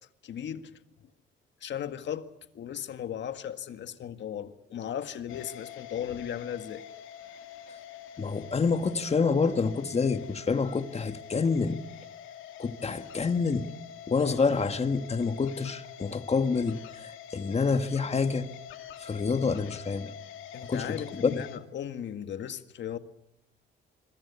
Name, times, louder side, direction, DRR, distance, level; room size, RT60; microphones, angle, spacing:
voice 1, 0.2-0.7 1.6-2.3 2.5-6.8 20.5-23.0, left 9 dB, 65° left, 1.9 m, -36 dB
sound 1, 5.3-21.6, left 9 dB, 90° left, 2.6 m, -46 dB
voice 2, 8.2-11.8 12.6-13.7 14.1-18.5 19.0-20.1 20.6-21.4, left 4 dB, 30° left, 1.9 m, -27 dB
26.5 x 23.5 x 7.1 m
cardioid pair, 90°, 20 cm